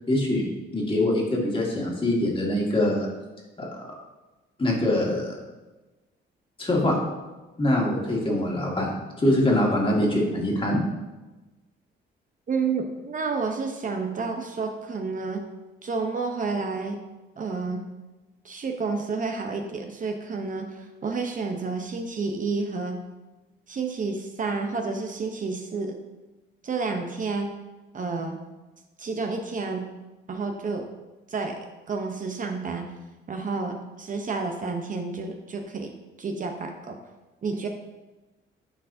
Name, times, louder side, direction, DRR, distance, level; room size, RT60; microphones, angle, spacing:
voice 1, 0.1-0.5 0.7-3.1 3.6-3.7 4.6-5.3 6.6-7.0 7.6-10.8, left 1 dB, 25° left, -2 dB, 1.9 m, -23 dB
voice 2, 12.5-15.4 15.8-17.0 17.4-17.8 18.4-23.0 23.7-25.9 26.6-27.5 27.9-28.4 29.0-29.9 30.3-30.9 31.3-31.6 31.9-32.9 33.3-35.9 36.2-37.0 37.4-37.7, right 4 dB, 40° right, 4 dB, 0.7 m, -30 dB
9.9 x 4.6 x 2.7 m, 1.1 s
cardioid pair, 90°, 20 cm